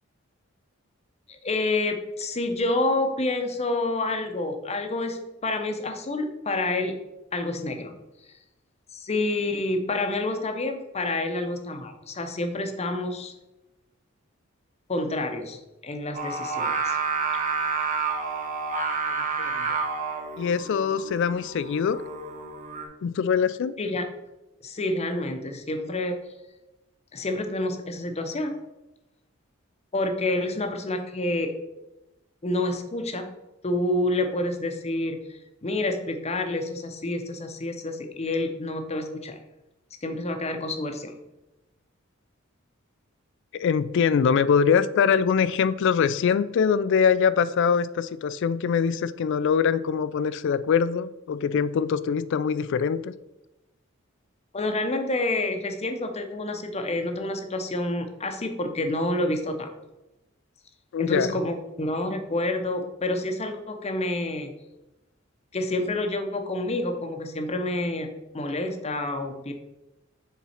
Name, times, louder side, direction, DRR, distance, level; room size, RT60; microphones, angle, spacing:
voice 1, 1.3-7.0 7.3-8.0 9.0-13.3 14.9-17.0 23.8-24.1 24.6-26.3 27.1-28.6 29.9-31.5 32.4-33.3 33.6-39.4 40.0-41.1 54.5-59.7 61.0-64.5 65.5-69.5, left 2 dB, 30° left, 6 dB, 0.7 m, -28 dB
Singing, 16.1-22.9, right 5 dB, 40° right, 0.9 m, -29 dB
voice 2, 19.1-19.8 20.4-22.0 23.0-23.8 43.5-53.1 60.9-61.3, left 6 dB, 60° left, 16 dB, 0.3 m, -23 dB
7.0 x 3.7 x 4.3 m, 0.97 s
head